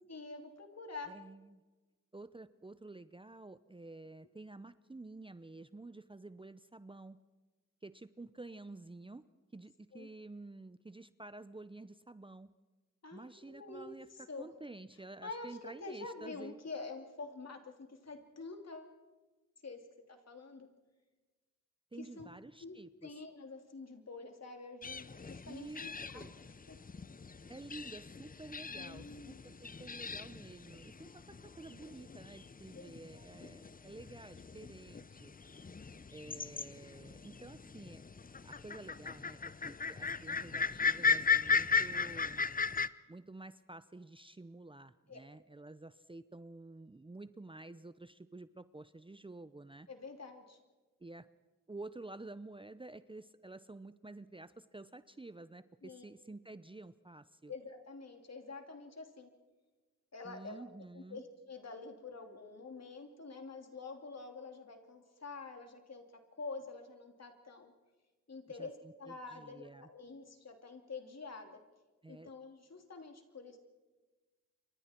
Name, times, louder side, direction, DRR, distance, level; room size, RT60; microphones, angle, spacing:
voice 1, 0.1-1.1 9.9-10.1 13.0-13.9 14.3-14.5 15.2-18.9 19.6-19.8 20.1-20.7 22.0-22.3 22.6-22.7 23.0-26.3 26.7-26.8 28.7-29.4 32.7-33.3 45.1-45.2 49.9-50.6 55.8-56.0 57.5-59.3 60.1-60.6 60.9-66.0 66.4-67.7 68.3-68.7 69.0-71.6 72.1-73.6, left 3 dB, 55° left, 4 dB, 3.0 m, -47 dB
voice 2, 1.1-1.6 2.1-7.2 7.8-9.2 9.5-12.5 13.1-16.6 21.9-23.2 25.4-26.3 27.5-35.3 36.1-38.0 38.4-42.5 43.1-49.9 51.0-51.3 51.7-57.5 60.2-61.2 68.6-69.9 72.0-72.3, right 2 dB, 15° right, 14 dB, 0.7 m, -50 dB
sound 1, 24.8-42.9, left 5 dB, 25° left, 0.7 m, -37 dB
28.5 x 24.5 x 4.5 m, 1.2 s
cardioid pair, 60°, 32 cm